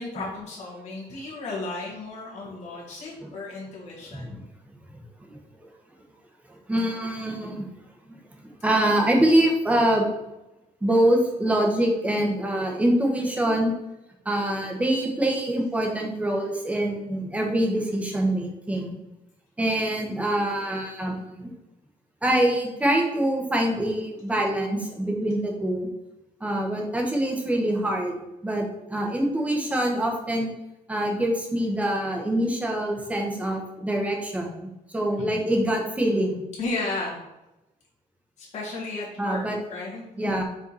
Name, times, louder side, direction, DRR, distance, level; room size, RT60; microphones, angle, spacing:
voice 1, 0.0-4.4 35.2-35.4 36.6-37.2 38.4-39.4 39.7-40.4, left 3 dB, 50° left, -5 dB, 1.9 m, -34 dB
voice 2, 6.7-7.6 8.6-10.1 10.8-13.7 14.2-19.0 19.6-21.5 22.2-25.9 26.4-28.1 28.4-30.5 30.9-34.7 34.9-36.4 39.2-39.6 40.2-40.4, right 1 dB, 10° right, 0 dB, 1.2 m, -24 dB
5.3 x 4.8 x 4.1 m, 0.93 s
cardioid pair, 155°, 15 cm